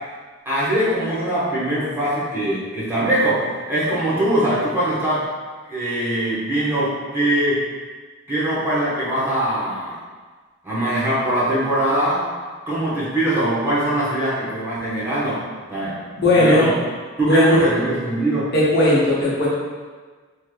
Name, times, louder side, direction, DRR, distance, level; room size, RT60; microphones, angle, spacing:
voice 1, 0.4-5.2 5.7-7.6 8.3-10.0 10.6-12.2 12.7-15.4 15.7-16.0 16.3-16.7 17.2-18.5, right 1 dB, 10° right, -10 dB, 1.0 m, -22 dB
voice 2, 15.9-16.7 17.2-17.7 18.5-19.5, left 1 dB, 55° left, -7 dB, 0.8 m, -17 dB
3.2 x 3.2 x 2.2 m, 1.4 s
head